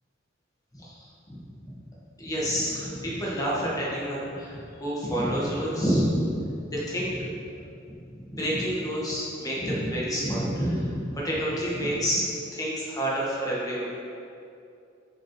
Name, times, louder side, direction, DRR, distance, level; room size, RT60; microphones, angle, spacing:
voice 1, 0.7-1.7 2.2-7.5 7.8-12.3 12.5-13.9, equal, 20° left, -6 dB, 1.5 m, -29 dB
8.0 x 5.5 x 3.2 m, 2.6 s
head